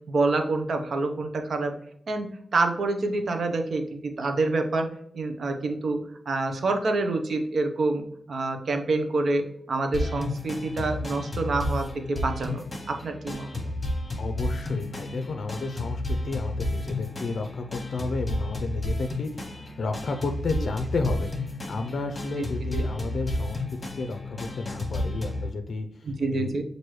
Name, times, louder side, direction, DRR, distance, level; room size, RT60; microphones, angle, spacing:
voice 1, 0.1-1.7 2.1-4.9 5.1-6.0 6.3-13.7 22.7-22.8 26.0-26.6, right 3 dB, 70° right, 5 dB, 0.7 m, -27 dB
sound 1, 9.9-25.5, left 1 dB, 30° left, 1.0 m, -32 dB
voice 2, 14.2-21.3 21.7-23.6 24.0-26.5, left 3 dB, 70° left, 5 dB, 0.4 m, -32 dB
6.1 x 2.6 x 3.1 m, 0.73 s
wide cardioid pair, 105°, 0 cm